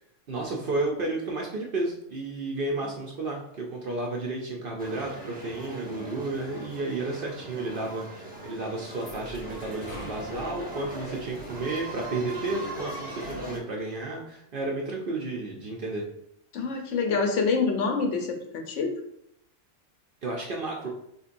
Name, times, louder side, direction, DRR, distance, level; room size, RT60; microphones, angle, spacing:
voice 1, 0.3-16.0 20.2-20.9, right 2 dB, 55° right, -1 dB, 0.6 m, -32 dB
sound 1, 4.8-13.6, right 1 dB, 10° right, 0.7 m, -39 dB
sound 2, 8.3-13.6, right 1 dB, 35° left, 0.9 m, -45 dB
voice 2, 16.5-18.9, left 4 dB, 70° left, 3 dB, 0.9 m, -26 dB
4.4 x 2.7 x 2.5 m, 0.76 s
omnidirectional pair, 1.3 m